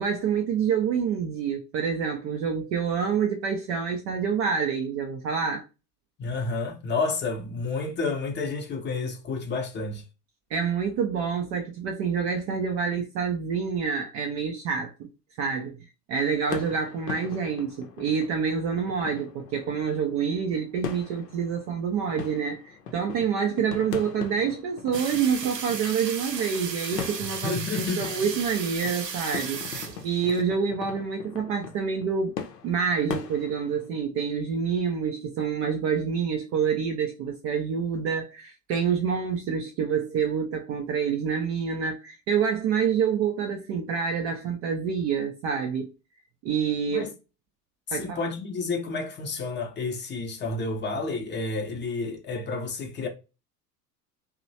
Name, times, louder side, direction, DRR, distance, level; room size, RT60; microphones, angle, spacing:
voice 1, 0.0-5.7 10.5-15.1 15.4-15.7 16.1-27.6 28.0-32.4 32.6-45.9 46.4-47.1 47.9-48.2, right 6 dB, 35° right, 0.4 m, -27 dB
voice 2, 6.2-10.0 27.4-28.2 46.9-47.1 47.9-53.1, left 3 dB, 25° left, 0.6 m, -30 dB
sound 1, 16.5-33.9, left 6 dB, 80° left, 0.6 m, -40 dB
sound 2, 24.9-30.4, right 6 dB, 85° right, 0.6 m, -35 dB
2.9 x 2.1 x 2.6 m
figure-of-eight pair, 75°, 47 cm